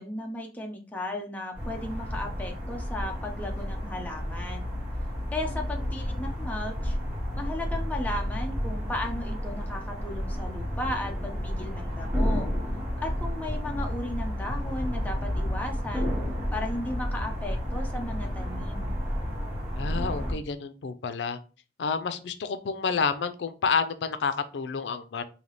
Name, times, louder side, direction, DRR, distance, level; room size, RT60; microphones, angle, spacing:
voice 1, 0.0-4.8 5.3-7.0 7.4-12.5 13.0-16.2 16.5-19.0, left 1 dB, 10° left, 1 dB, 0.6 m, -35 dB
sound 1, 1.5-20.3, equal, 20° right, 2.0 m, -31 dB
voice 2, 19.8-21.4 21.8-25.2, left 5 dB, 85° left, 10 dB, 0.4 m, -29 dB
3.3 x 2.8 x 3.9 m, 0.35 s
head